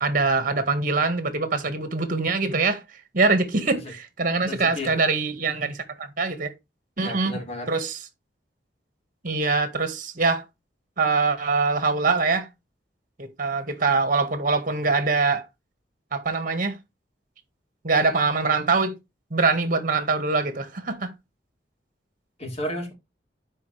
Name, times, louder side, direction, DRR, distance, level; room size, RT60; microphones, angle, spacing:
voice 1, 0.0-2.8 3.1-6.5 7.0-7.4 7.7-8.1 9.2-10.4 11.0-12.5 13.2-15.5 16.1-16.8 17.8-19.0 19.3-21.1, right 4 dB, 50° right, 1.8 m, -23 dB
voice 2, 4.5-4.9 5.5-5.6 7.0-7.7 22.4-22.9, left 1 dB, 35° left, 3.8 m, -32 dB
12.0 x 5.1 x 3.4 m
head